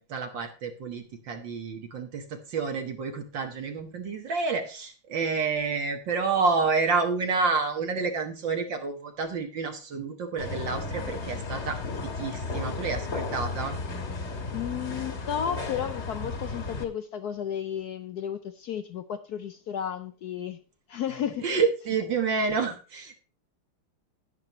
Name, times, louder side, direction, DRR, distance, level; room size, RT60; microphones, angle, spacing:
voice 1, 0.0-13.8 21.4-23.2, right 4 dB, 60° right, 1.9 m, -29 dB
sound 1, 10.4-16.8, left 3 dB, 35° left, 1.5 m, -34 dB
voice 2, 14.5-20.6 20.9-21.4, left 9 dB, 75° left, 0.9 m, -33 dB
10.5 x 10.5 x 3.0 m
omnidirectional pair, 2.4 m